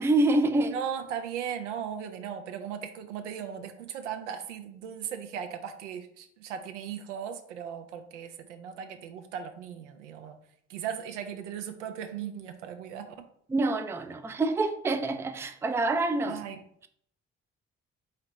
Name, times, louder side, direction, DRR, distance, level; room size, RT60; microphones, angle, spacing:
voice 1, 0.0-0.8 13.5-16.4, right 2 dB, 10° right, 0.4 m, -26 dB
voice 2, 0.7-10.4 10.7-13.3 16.2-16.6, right 8 dB, 80° right, 0.5 m, -37 dB
4.3 x 3.8 x 3.0 m
figure-of-eight pair, 45°, 36 cm